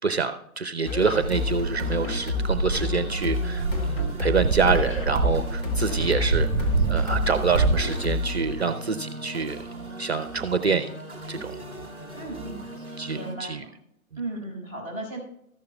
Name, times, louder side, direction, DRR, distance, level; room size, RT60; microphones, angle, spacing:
voice 1, 0.0-9.6 10.0-10.9 11.3-11.6 13.0-13.6, right 5 dB, 50° right, 10 dB, 0.6 m, -26 dB
sound 1, 0.8-8.4, left 3 dB, 40° left, 2.2 m, -29 dB
sound 2, 1.0-13.3, right 2 dB, 10° left, 1.7 m, -39 dB
sound 3, 1.1-7.8, right 4 dB, 20° right, 0.8 m, -26 dB
voice 2, 12.2-13.7 14.2-15.2, right 2 dB, 25° left, -2 dB, 5.0 m, -36 dB
14.0 x 11.5 x 2.3 m, 0.73 s
figure-of-eight pair, 140°, 43 cm